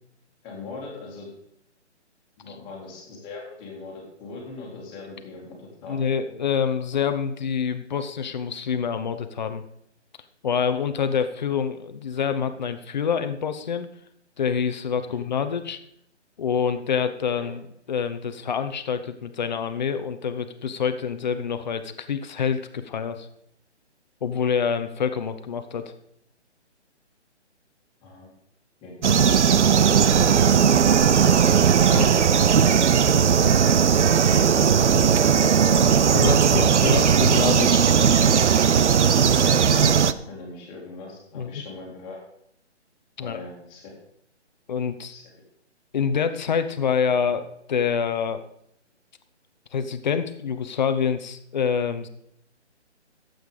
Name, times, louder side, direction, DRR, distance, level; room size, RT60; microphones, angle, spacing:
voice 1, 0.4-1.3 2.4-6.0 15.1-15.2 17.3-17.5 28.0-28.3 28.8-29.5 30.5-31.6 32.6-33.0 34.3-35.9 36.3-36.7 38.9-42.2 43.2-43.9 45.1-45.2, left 3 dB, 15° left, -2 dB, 2.1 m, -39 dB
voice 2, 5.9-9.6 10.4-13.9 14.4-15.8 16.4-23.3 24.2-25.9 31.8-32.1 36.1-37.9 41.3-41.6 43.2-43.4 44.7-45.2 45.9-48.4 49.7-52.1, left 6 dB, 40° left, 10 dB, 0.8 m, -26 dB
sound 1, 29.0-40.1, right 7 dB, 75° right, 0.7 m, -18 dB
12.5 x 8.0 x 5.0 m, 0.73 s
hypercardioid pair, 160°, 36 cm